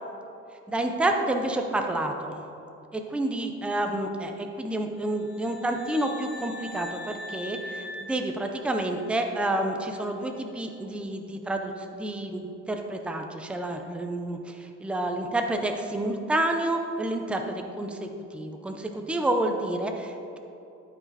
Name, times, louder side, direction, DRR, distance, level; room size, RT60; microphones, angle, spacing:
voice 1, 0.7-2.4 2.9-20.4, right 1 dB, 5° right, 4 dB, 0.5 m, -29 dB
sound 1, 5.1-9.1, left 1 dB, 35° left, 1.0 m, -41 dB
12.0 x 4.8 x 4.1 m, 2.8 s
cardioid pair, 135°, 31 cm